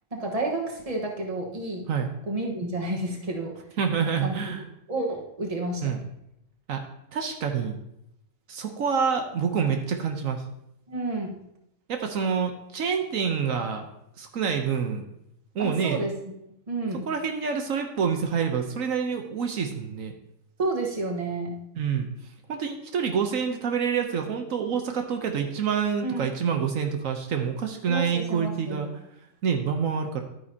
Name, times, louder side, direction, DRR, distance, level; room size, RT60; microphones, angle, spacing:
voice 1, 0.1-1.9 2.2-3.6 4.0-4.6 4.9-6.0 10.9-11.4 15.6-17.1 20.6-21.5 26.0-26.3 27.9-28.9, right 2 dB, 25° right, 0 dB, 1.3 m, -31 dB
voice 2, 3.8-4.6 5.8-6.0 6.7-6.8 7.1-7.8 8.5-10.4 11.9-13.9 14.2-15.0 15.5-16.0 17.1-20.1 21.8-22.1 22.5-28.9 29.4-30.2, right 6 dB, 75° right, 5 dB, 1.3 m, -27 dB
11.5 x 9.3 x 2.8 m, 0.80 s
omnidirectional pair, 1.4 m